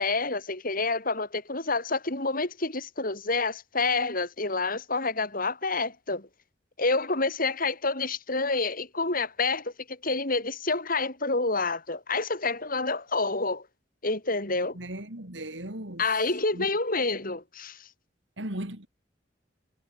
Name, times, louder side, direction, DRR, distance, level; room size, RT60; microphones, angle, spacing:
voice 1, 0.0-6.3 6.8-13.6 14.0-14.8 16.0-17.9, left 3 dB, 50° left, 6.3 m, -28 dB
voice 2, 14.7-16.1 16.5-16.7 18.4-18.9, right 1 dB, 75° right, 4.9 m, -37 dB
head